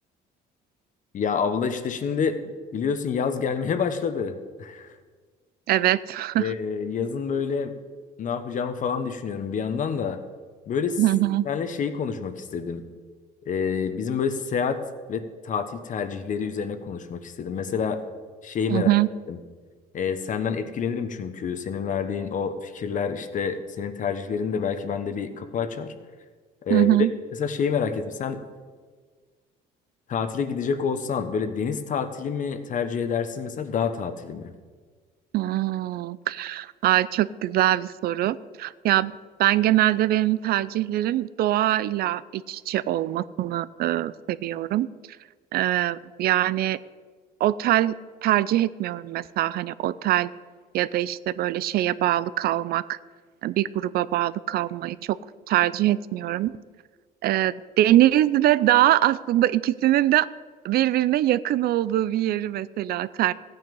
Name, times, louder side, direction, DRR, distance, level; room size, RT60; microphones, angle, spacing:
voice 1, 1.1-2.4 2.7-4.9 6.4-7.7 8.2-10.2 10.7-11.0 11.4-12.8 13.5-14.8 15.1-18.0 18.4-18.9 19.3-19.4 19.9-25.9 26.6-26.9 27.4-28.4 30.1-34.5, left 6 dB, 50° left, 10 dB, 1.2 m, -28 dB
voice 2, 5.7-6.5 11.0-11.5 18.7-19.1 26.7-27.1 35.3-39.1 39.4-44.9 45.5-46.8 47.4-47.9 48.2-50.3 50.7-53.0 53.4-55.2 55.5-56.5 57.2-60.3 60.6-63.3, right 14 dB, 65° right, 18 dB, 0.5 m, -23 dB
15.0 x 9.4 x 5.4 m, 1.5 s
cardioid pair, 110°, 17 cm